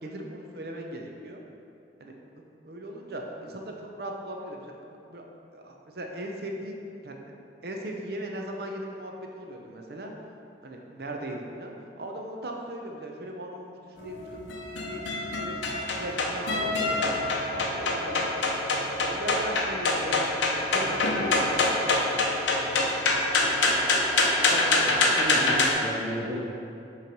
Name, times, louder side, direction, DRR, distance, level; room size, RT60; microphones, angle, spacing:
voice 1, 0.0-1.4 2.0-2.2 2.6-4.7 5.1-5.2 5.5-7.2 7.6-10.1 10.6-15.6 15.9-17.2 17.5-18.2 19.1-21.9, right 1 dB, 55° right, 1 dB, 0.7 m, -38 dB
sound 1, 14.0-25.7, left 2 dB, 80° left, 0.7 m, -25 dB
voice 2, 23.6-26.4, right 1 dB, 5° right, -9 dB, 0.7 m, -35 dB
7.3 x 3.2 x 5.3 m, 2.6 s
head